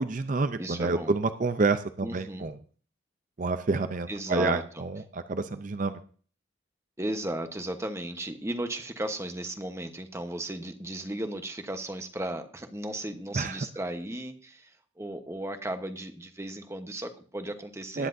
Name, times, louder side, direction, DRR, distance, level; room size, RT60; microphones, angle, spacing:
voice 1, 0.0-2.5 3.4-6.0 13.3-13.6 18.0-18.1, right 3 dB, 40° right, 10 dB, 0.5 m, -28 dB
voice 2, 0.6-1.1 2.0-2.5 4.1-4.8 7.0-18.1, right 1 dB, 15° right, 7 dB, 1.0 m, -35 dB
19.5 x 10.0 x 2.7 m, 0.42 s
head